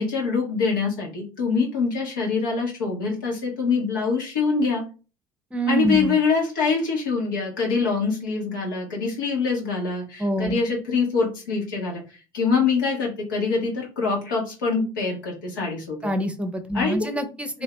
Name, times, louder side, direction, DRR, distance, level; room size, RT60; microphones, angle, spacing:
voice 1, 0.0-4.8 5.7-16.1 16.7-17.1 17.5-17.6, left 4 dB, 90° left, -2 dB, 1.2 m, -24 dB
voice 2, 5.5-6.2 10.2-10.6 16.0-17.6, right 1 dB, 10° right, 7 dB, 0.6 m, -25 dB
2.7 x 2.7 x 3.3 m, 0.33 s
hypercardioid pair, 65°, 11 cm